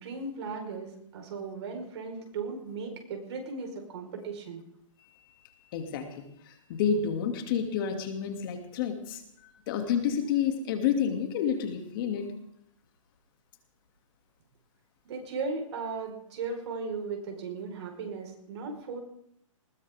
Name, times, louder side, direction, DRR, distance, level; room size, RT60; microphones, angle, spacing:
voice 1, 0.0-4.6 15.0-19.0, right 4 dB, 55° right, 3 dB, 4.6 m, -37 dB
voice 2, 5.7-12.3, left 7 dB, 40° left, 5 dB, 2.6 m, -30 dB
20.5 x 19.0 x 3.6 m, 0.71 s
hypercardioid pair, 145°, 17 cm